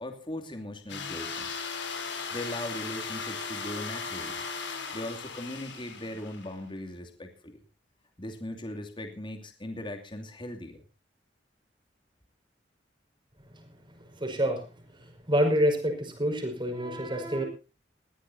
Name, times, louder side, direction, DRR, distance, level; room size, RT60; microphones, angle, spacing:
voice 1, 0.0-1.7 2.3-4.4 4.9-7.6 8.2-10.8, left 1 dB, 25° left, 5 dB, 2.8 m, -39 dB
sound 1, 0.9-6.5, left 5 dB, 85° left, 4.9 m, -37 dB
voice 2, 14.2-14.6 15.3-17.4, equal, 25° right, 5 dB, 5.6 m, -27 dB
21.5 x 16.0 x 2.8 m, 0.33 s
head